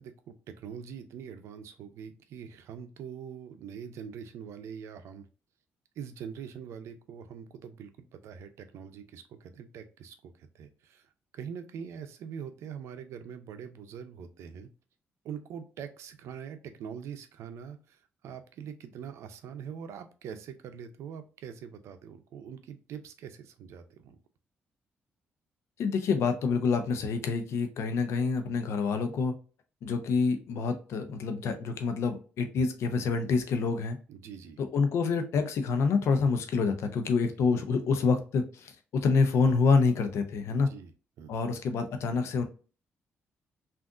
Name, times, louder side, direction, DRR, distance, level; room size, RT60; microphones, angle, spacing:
voice 1, 0.0-5.3 6.0-11.0 11.3-14.7 15.2-18.0 18.2-24.2 34.1-34.6 37.4-37.5 40.5-40.9 41.2-41.3, right 7 dB, 80° right, 8 dB, 0.5 m, -43 dB
voice 2, 25.8-29.3 29.8-34.0 34.6-40.7 41.3-42.4, left 4 dB, 75° left, 7 dB, 0.6 m, -27 dB
3.6 x 2.5 x 2.5 m, 0.36 s
cardioid pair, 75°, 5 cm